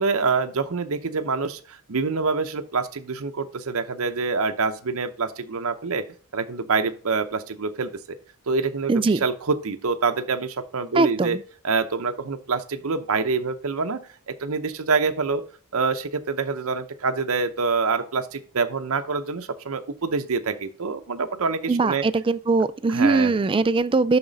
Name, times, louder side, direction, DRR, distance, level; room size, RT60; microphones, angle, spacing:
voice 1, 0.0-6.0 6.3-8.2 8.5-8.9 9.2-11.4 11.6-14.0 14.3-15.4 15.7-22.0 22.9-23.3, right 4 dB, 65° right, 0.7 m, -26 dB
voice 2, 8.9-9.2 10.9-11.4 21.7-24.2, right 3 dB, 25° right, 0.4 m, -21 dB
7.3 x 6.0 x 4.0 m
head